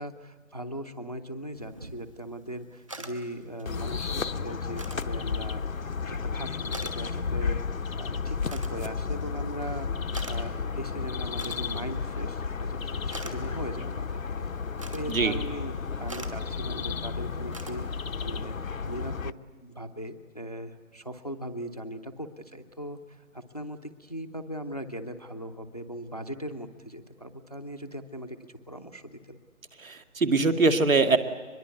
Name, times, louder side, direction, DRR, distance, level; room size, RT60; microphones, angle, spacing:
voice 1, 0.0-9.9 10.2-14.5 14.9-18.6 18.8-19.3 19.6-29.4, equal, 25° left, 9 dB, 0.7 m, -39 dB
sound 1, 1.5-18.5, right 2 dB, 20° right, 1.3 m, -48 dB
sound 2, 3.7-19.3, left 5 dB, 65° left, 0.8 m, -32 dB
voice 2, 29.8-31.2, right 3 dB, 65° right, 7 dB, 2.2 m, -22 dB
24.0 x 21.5 x 8.3 m, 1.5 s
figure-of-eight pair, 175°, 43 cm